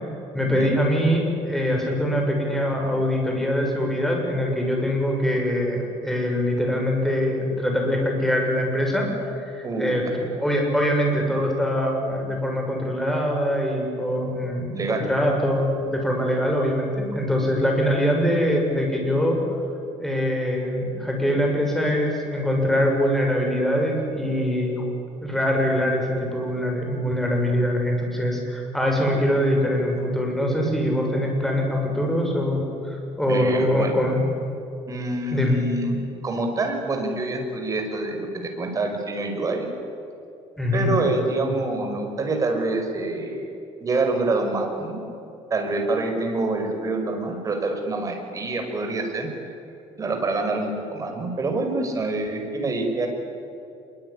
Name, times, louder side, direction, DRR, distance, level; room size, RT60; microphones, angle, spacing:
voice 1, 0.3-19.4 20.0-24.9 25.2-34.2 35.3-35.6 40.6-40.9, equal, ahead, 1 dB, 6.7 m, -23 dB
voice 2, 14.7-15.1 33.3-34.0 34.9-39.7 40.7-43.5 43.8-45.0 45.5-49.3 50.0-53.1, right 2 dB, 30° right, 3 dB, 5.5 m, -26 dB
26.0 x 23.0 x 10.0 m, 2.8 s
cardioid pair, 140°, 12 cm